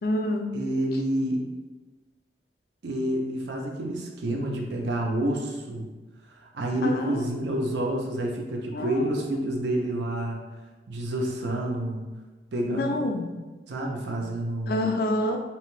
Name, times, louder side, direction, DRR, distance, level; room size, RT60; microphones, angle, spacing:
voice 1, 0.0-0.5 6.8-7.4 8.7-9.1 12.7-13.3 14.7-15.4, left 1 dB, 55° left, 3 dB, 0.3 m, -27 dB
voice 2, 0.5-1.5 2.8-5.9 6.4-10.4 10.9-12.0 12.5-13.0 13.7-14.8, right 1 dB, 70° right, 0 dB, 0.5 m, -28 dB
2.8 x 2.1 x 3.0 m, 1.2 s
head